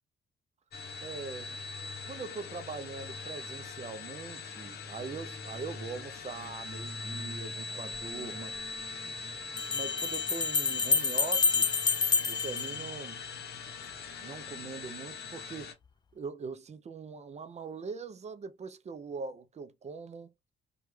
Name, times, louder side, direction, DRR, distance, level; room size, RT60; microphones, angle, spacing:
sound 1, 0.7-15.7, left 4 dB, 55° left, 0.7 m, -42 dB
voice 1, 1.0-1.6 2.1-8.5 9.7-11.7 12.3-13.2 14.2-15.8 16.1-20.3, right 5 dB, 35° right, 0.5 m, -42 dB
Bell, 7.9-8.0 9.6-13.5, left 5 dB, 20° left, 0.3 m, -28 dB
3.1 x 2.3 x 3.0 m
cardioid pair, 90°, 20 cm